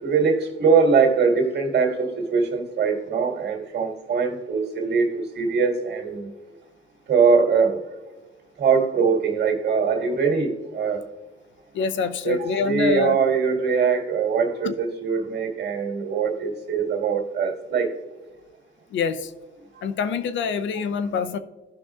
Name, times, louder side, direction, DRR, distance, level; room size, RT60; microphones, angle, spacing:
voice 1, 0.0-6.3 7.1-7.8 8.6-11.0 12.2-17.9 20.5-20.6, right 5 dB, 55° right, 1 dB, 2.0 m, -22 dB
voice 2, 11.7-13.2 14.6-14.7 18.9-19.3 19.8-21.4, left 5 dB, 70° left, 12 dB, 0.6 m, -25 dB
15.0 x 6.0 x 2.4 m, 1.2 s
cardioid pair, 90°, 20 cm